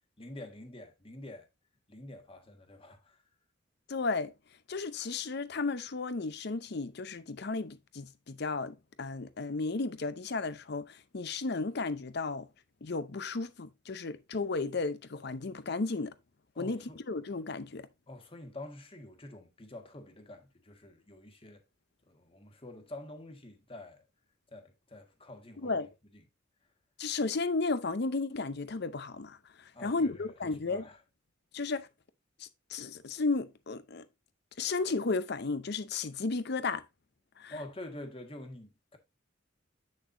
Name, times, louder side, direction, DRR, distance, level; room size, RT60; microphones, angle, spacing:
voice 1, 0.2-1.5 1.9-3.2 16.5-17.0 18.1-21.6 22.1-24.0 24.5-25.8 26.1-26.2 29.7-30.3 30.7-31.0 37.5-39.0, left 1 dB, 30° left, 1.5 m, -47 dB
voice 2, 3.9-4.3 4.7-12.5 12.8-16.1 16.6-17.9 25.6-25.9 27.0-30.8 31.5-31.9 32.4-34.0 34.6-36.8 37.4-37.5, left 3 dB, 60° left, 0.7 m, -34 dB
8.2 x 6.5 x 2.6 m
head